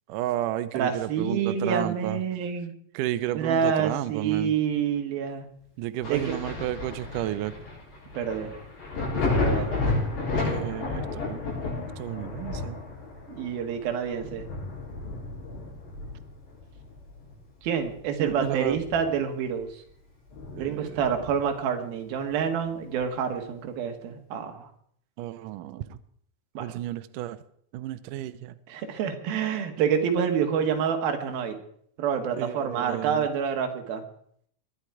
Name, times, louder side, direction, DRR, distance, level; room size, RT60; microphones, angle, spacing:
voice 1, 0.1-2.2 2.9-4.5 5.8-7.5 10.4-11.4 12.0-12.8 18.2-18.8 20.6-21.1 25.2-26.0 26.6-27.4 27.7-28.6 32.4-33.3, right 14 dB, 90° right, 12 dB, 1.8 m, -32 dB
voice 2, 0.7-2.7 3.3-5.5 6.1-6.3 8.1-8.5 9.3-9.7 13.3-14.5 17.6-19.7 20.6-24.7 26.5-26.6 28.7-31.6 32.0-34.0, right 7 dB, 70° right, 5 dB, 3.3 m, -27 dB
Thunder, 6.0-17.4 17.8-19.3 19.6-19.7 20.3-21.6 23.0-23.1, left 2 dB, 85° left, 10.0 m, -32 dB
21.5 x 10.5 x 4.8 m, 0.65 s
omnidirectional pair, 4.7 m